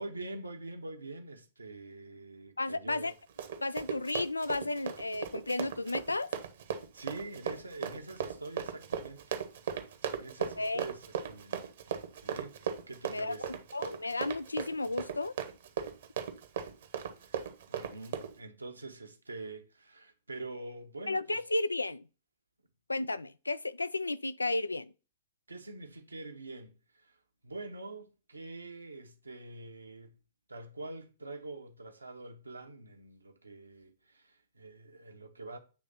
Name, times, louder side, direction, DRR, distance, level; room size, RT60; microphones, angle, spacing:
voice 1, 0.0-3.1 6.9-9.4 10.1-11.6 12.2-13.6 17.2-17.4 17.7-21.4 25.5-27.2 27.4-30.2 30.5-35.6, right 2 dB, 85° right, 1.1 m, -45 dB
voice 2, 2.6-3.1 3.6-6.3 10.6-10.9 13.1-15.4 21.1-22.1 22.9-24.9, left 2 dB, 85° left, 0.3 m, -33 dB
Run, 3.0-18.3, right 8 dB, 60° right, 1.0 m, -37 dB
8.4 x 3.2 x 4.1 m
figure-of-eight pair, 110°, 0 cm